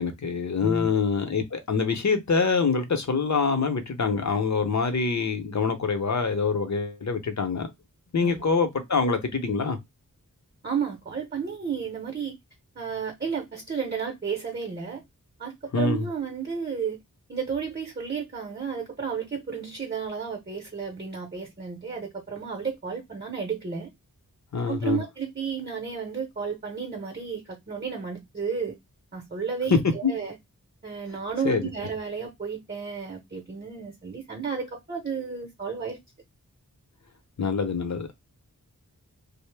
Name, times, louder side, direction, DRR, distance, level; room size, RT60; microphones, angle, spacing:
voice 1, 0.0-7.7 8.1-9.8 15.7-16.1 24.5-25.0 29.7-30.1 31.4-31.7 37.4-38.1, left 5 dB, 55° left, 0.7 m, -25 dB
voice 2, 10.6-12.4 12.8-15.0 15.4-17.0 17.3-23.9 24.7-28.8 29.1-30.4 30.8-36.0, right 6 dB, 30° right, 0.8 m, -32 dB
2.6 x 2.0 x 3.2 m
wide cardioid pair, 60°, 34 cm